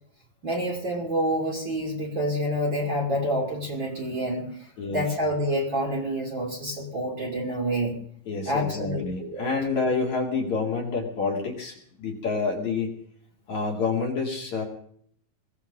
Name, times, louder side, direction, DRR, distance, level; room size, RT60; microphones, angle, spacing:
voice 1, 0.4-4.5 4.9-8.0 8.4-9.5, equal, 30° right, -1 dB, 3.0 m, -28 dB
voice 2, 8.3-12.9 13.5-14.6, left 4 dB, 50° left, -1 dB, 3.2 m, -28 dB
22.0 x 16.5 x 3.8 m, 0.63 s
omnidirectional pair, 4.6 m